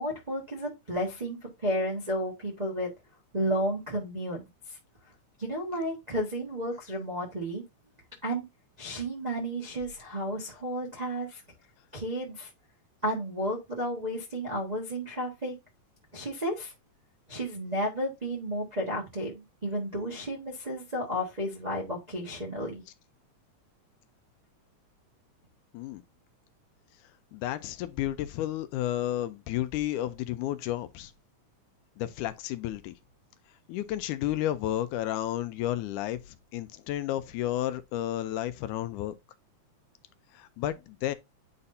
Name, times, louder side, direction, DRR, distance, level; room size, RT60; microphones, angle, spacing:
voice 1, 0.0-2.9 3.3-4.4 5.4-7.6 8.2-8.4 8.8-11.4 11.9-12.5 13.0-15.5 16.1-16.7 17.3-22.8, equal, 80° right, 0.3 m, -32 dB
voice 2, 27.3-31.1 32.0-32.9 33.7-39.1 40.4-41.1, left 13 dB, 90° left, 2.1 m, -32 dB
9.7 x 4.2 x 2.6 m
omnidirectional pair, 3.5 m